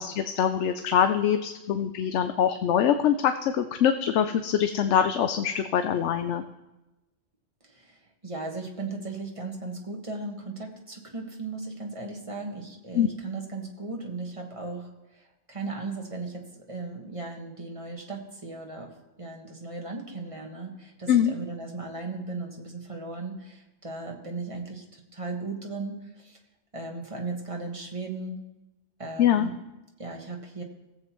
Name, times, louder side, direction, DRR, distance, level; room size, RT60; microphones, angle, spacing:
voice 1, 0.0-6.4 12.9-13.1 21.1-21.3 29.2-29.5, left 9 dB, 75° left, 8 dB, 0.9 m, -24 dB
voice 2, 7.6-26.4 26.7-28.4 29.0-29.6 30.0-30.6, right 3 dB, 30° right, 1 dB, 1.4 m, -37 dB
18.0 x 7.8 x 3.0 m, 1.0 s
omnidirectional pair, 1.2 m